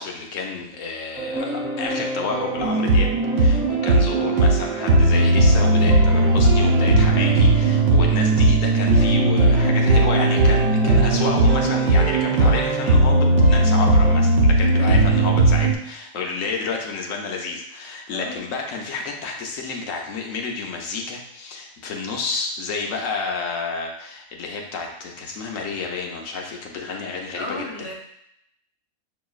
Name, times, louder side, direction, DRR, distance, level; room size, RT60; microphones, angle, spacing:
voice 1, 0.0-3.1 3.4-27.9, left 4 dB, 70° left, 1 dB, 1.1 m, -30 dB
sound 1, 1.2-14.1, right 3 dB, 10° right, 0.7 m, -29 dB
sound 2, 2.6-15.8, right 2 dB, 85° right, 1.3 m, -17 dB
voice 2, 18.1-18.4 27.3-27.9, equal, 35° left, -3 dB, 0.5 m, -33 dB
6.0 x 3.0 x 2.3 m, 0.77 s
omnidirectional pair, 1.5 m